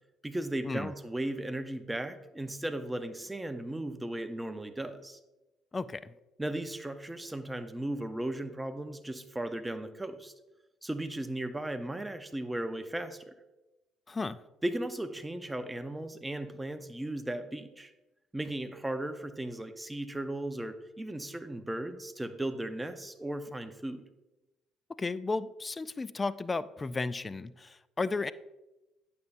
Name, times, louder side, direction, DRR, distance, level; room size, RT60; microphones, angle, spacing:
voice 1, 0.2-5.2 6.4-10.3 10.8-13.4 14.6-17.9 18.3-24.0, right 1 dB, 10° right, 8 dB, 0.7 m, -36 dB
voice 2, 5.7-6.1 14.1-14.4 25.0-28.3, left 3 dB, 25° left, 17 dB, 0.3 m, -34 dB
9.3 x 6.9 x 2.6 m, 1.0 s
supercardioid pair, 65°, 0 cm